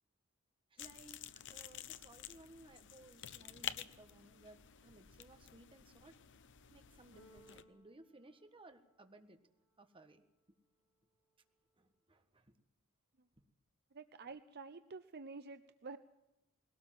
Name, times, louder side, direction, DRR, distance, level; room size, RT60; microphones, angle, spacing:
voice 1, 0.7-1.2 1.5-6.1 6.7-9.4 9.8-10.2 11.8-12.6, right 2 dB, 25° right, 7 dB, 1.6 m, -60 dB
sound 1, 0.8-7.6, left 10 dB, 60° left, 0.8 m, -50 dB
Keyboard (musical), 7.1-9.2, equal, 90° left, 5.3 m, -65 dB
voice 2, 13.9-16.0, right 4 dB, 50° right, 10 dB, 0.7 m, -49 dB
21.5 x 17.5 x 7.7 m, 0.93 s
head